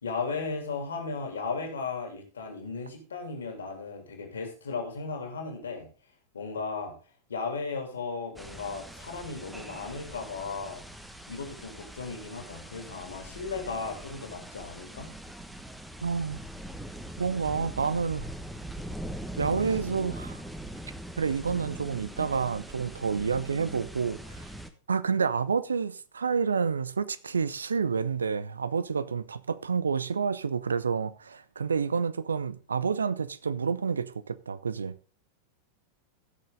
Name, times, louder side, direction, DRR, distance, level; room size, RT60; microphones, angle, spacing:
voice 1, 0.0-5.9 6.3-6.9 7.3-10.8 11.3-15.1, left 4 dB, 70° left, 3.1 m, -36 dB
sound 1, 8.4-24.7, right 1 dB, 5° right, 1.1 m, -42 dB
voice 2, 16.0-16.4 17.2-18.3 19.4-20.4 21.2-24.4 24.9-34.9, right 5 dB, 75° right, 0.6 m, -29 dB
16.0 x 6.5 x 3.8 m
figure-of-eight pair, 90°, 0 cm